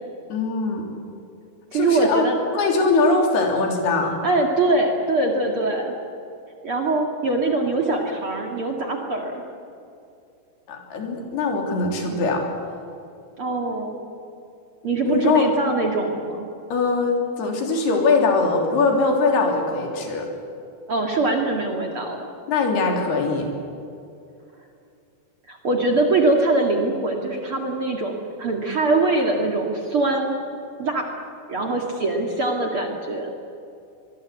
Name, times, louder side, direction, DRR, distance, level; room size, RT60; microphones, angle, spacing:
voice 1, 0.3-0.9 1.7-2.2 2.5-4.2 10.7-12.5 15.1-15.5 16.7-20.3 22.5-23.5, left 3 dB, 75° left, 1 dB, 5.3 m, -21 dB
voice 2, 1.7-2.4 4.2-5.9 6.6-9.4 13.4-14.0 14.8-16.5 20.9-22.2 25.5-30.4 30.8-31.1 31.5-33.3, right 2 dB, 40° right, 1 dB, 2.3 m, -23 dB
25.0 x 22.0 x 8.4 m, 2.6 s
omnidirectional pair, 4.6 m